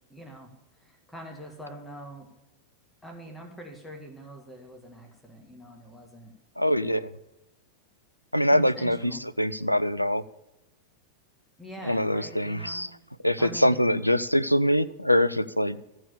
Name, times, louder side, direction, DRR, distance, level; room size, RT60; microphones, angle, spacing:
voice 1, 0.1-2.3 3.0-6.3 8.5-9.2 11.6-12.9 13.4-13.8, right 1 dB, 5° left, 1 dB, 1.7 m, -44 dB
voice 2, 6.6-7.1 8.3-10.2 11.8-12.9 13.2-15.8, equal, 90° left, 13 dB, 0.4 m, -24 dB
13.5 x 4.7 x 8.3 m, 0.96 s
figure-of-eight pair, 90°, 0 cm